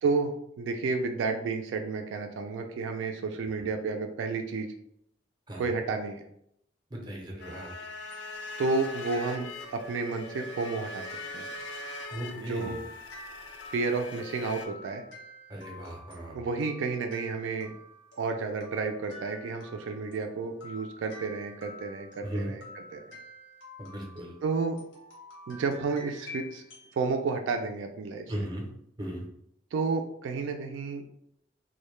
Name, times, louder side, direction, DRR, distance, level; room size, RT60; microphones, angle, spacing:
voice 1, 0.0-4.7 5.6-6.2 8.6-11.0 11.3-11.5 12.4-12.8 13.7-15.0 16.3-17.7 18.2-22.6 22.9-23.0 24.4-24.8 25.5-26.6 27.0-28.2 29.7-31.0, right 4 dB, 80° right, 5 dB, 0.3 m, -31 dB
voice 2, 6.9-7.7 12.1-12.8 15.5-16.4 22.2-22.6 23.8-24.3 28.3-28.7 29.0-29.2, right 1 dB, 25° right, -1 dB, 0.5 m, -37 dB
sound 1, 7.4-14.7, left 2 dB, 65° left, 0.3 m, -41 dB
sound 2, 8.1-27.0, left 1 dB, 90° left, 0.9 m, -49 dB
2.1 x 2.1 x 3.0 m, 0.74 s
head